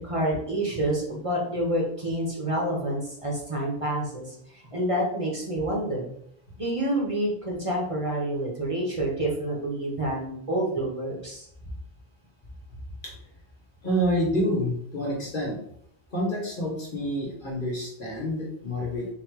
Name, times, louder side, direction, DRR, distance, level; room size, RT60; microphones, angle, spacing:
voice 1, 0.0-6.1 6.6-11.5, right 1 dB, 35° right, -3 dB, 1.0 m, -28 dB
voice 2, 13.8-15.6 16.1-19.1, equal, 55° left, -2 dB, 1.2 m, -28 dB
3.9 x 2.4 x 4.5 m, 0.69 s
omnidirectional pair, 1.1 m